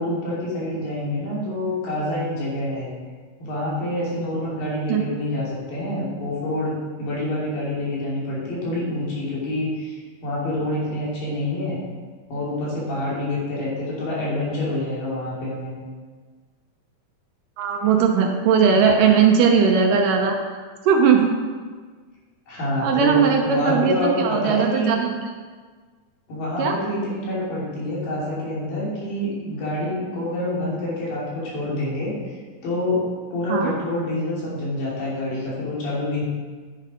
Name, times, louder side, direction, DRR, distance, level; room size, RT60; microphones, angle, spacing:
voice 1, 0.0-2.9 3.4-11.8 12.3-15.7 22.5-24.9 26.3-32.1 32.6-33.0 33.3-36.2, left 1 dB, 70° left, -6 dB, 4.6 m, -27 dB
voice 2, 17.6-20.6 20.9-21.4 22.8-25.1 26.6-26.7 33.5-33.7, right 6 dB, 75° right, 2 dB, 2.3 m, -18 dB
10.5 x 7.2 x 5.0 m, 1.5 s
omnidirectional pair, 4.1 m